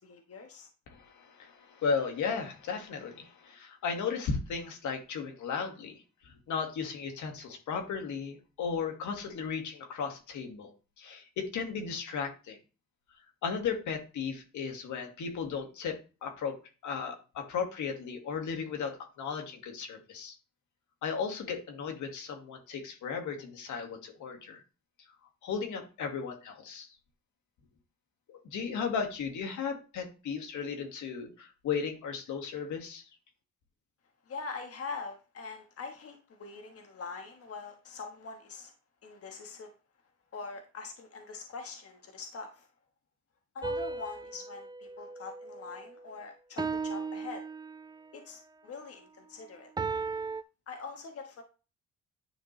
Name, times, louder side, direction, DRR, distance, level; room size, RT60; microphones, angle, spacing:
voice 1, 0.0-0.7 34.3-38.7 39.0-39.7 40.3-42.7 43.5-47.4 48.1-49.7 50.7-51.4, left 4 dB, 50° left, 4 dB, 1.4 m, -43 dB
voice 2, 0.9-10.7 11.0-12.6 13.4-16.6 16.8-20.4 21.0-24.6 25.4-26.9 28.3-33.1, left 6 dB, 75° left, 4 dB, 2.0 m, -35 dB
sound 1, 43.6-46.0 46.6-48.1 49.8-50.4, right 4 dB, 15° right, 0.3 m, -36 dB
9.9 x 5.2 x 3.2 m, 0.33 s
cardioid pair, 90°, 30 cm